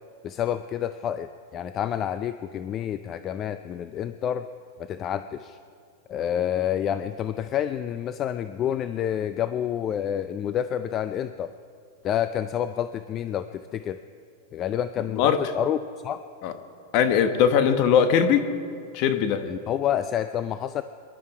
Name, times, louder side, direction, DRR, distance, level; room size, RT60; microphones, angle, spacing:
voice 1, 0.2-4.5 4.8-5.6 6.1-11.5 12.0-14.0 14.5-15.8 16.0-16.2 19.4-20.8, left 10 dB, 30° left, 11 dB, 0.5 m, -28 dB
voice 2, 16.9-18.5 18.9-19.5, left 8 dB, 50° left, 8 dB, 1.3 m, -20 dB
24.5 x 11.5 x 4.9 m, 2.3 s
hypercardioid pair, 130°, 0 cm